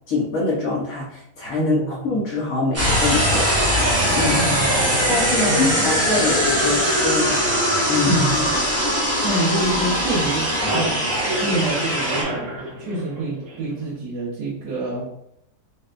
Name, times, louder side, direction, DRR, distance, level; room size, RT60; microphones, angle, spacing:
voice 1, 0.1-3.5 4.1-4.4 5.1-7.5 7.9-8.2, left 3 dB, 65° left, -5 dB, 1.2 m, -24 dB
voice 2, 1.6-2.0 4.4-5.1 5.5-5.7 8.1-8.7 9.2-11.0 11.4-15.1, right 2 dB, 90° right, -5 dB, 1.3 m, -26 dB
sound 1, 2.7-12.2, equal, 15° right, 0.6 m, -21 dB
sound 2, 8.8-9.9 10.2-13.9, right 2 dB, 60° right, 1.2 m, -30 dB
4.1 x 2.2 x 2.4 m, 0.75 s
omnidirectional pair, 1.6 m